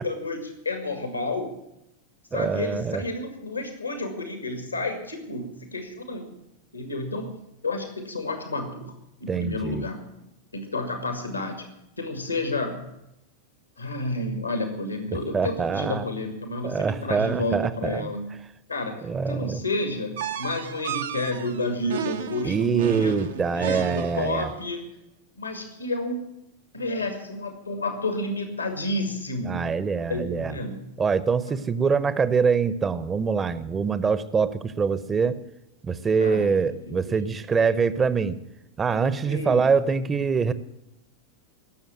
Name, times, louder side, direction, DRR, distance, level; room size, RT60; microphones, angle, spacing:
voice 1, 0.0-1.5 2.3-6.3 6.7-7.4 7.6-8.9 9.2-10.0 10.5-11.7 12.0-12.8 13.8-18.3 18.7-24.9 25.4-26.2 26.7-29.6 30.1-30.9 36.2-37.2 39.2-39.7, left 2 dB, 80° left, 5 dB, 2.1 m, -30 dB
voice 2, 2.3-3.0 9.3-9.8 15.3-16.1 16.6-18.1 19.0-19.6 22.4-24.5 29.5-30.5 31.0-35.4 35.8-38.4 38.8-40.5, right 5 dB, 20° right, 15 dB, 0.8 m, -24 dB
sound 1, 20.2-24.5, right 9 dB, 60° right, 0.8 m, -33 dB
18.5 x 7.1 x 9.2 m, 0.83 s
figure-of-eight pair, 90°, 0 cm